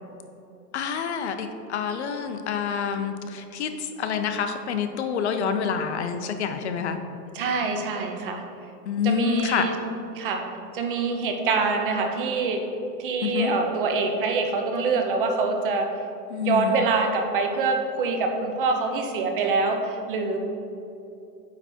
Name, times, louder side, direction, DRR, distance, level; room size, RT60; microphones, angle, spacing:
voice 1, 0.7-7.0 8.9-9.7 13.2-13.5 16.3-16.8, left 7 dB, 45° left, 7 dB, 0.5 m, -27 dB
voice 2, 7.3-8.4 9.0-9.7 10.1-10.5 10.7-12.6 13.0-15.9 16.4-20.4, right 4 dB, 35° right, 4 dB, 0.6 m, -25 dB
8.9 x 3.4 x 4.2 m, 2.7 s
hypercardioid pair, 155°, 49 cm